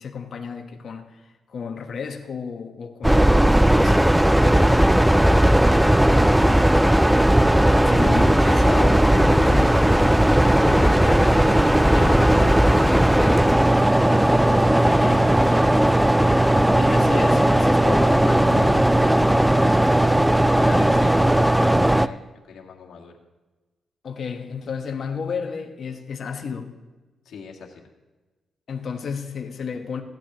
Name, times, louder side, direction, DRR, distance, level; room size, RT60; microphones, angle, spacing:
voice 1, 0.0-4.3 7.8-9.9 10.6-14.4 15.0-15.4 16.8-18.9 24.0-26.8 28.7-30.0, left 5 dB, 55° left, 1.2 m, -32 dB
sound 1, 3.0-22.1, right 1 dB, 5° right, 0.3 m, -17 dB
Harp, 3.0-9.8, equal, 50° right, 1.5 m, -44 dB
voice 2, 14.4-16.3 19.5-22.2 22.5-23.2 27.3-27.9, left 6 dB, 90° left, 1.8 m, -41 dB
16.0 x 12.0 x 3.0 m
cardioid pair, 115°, 0 cm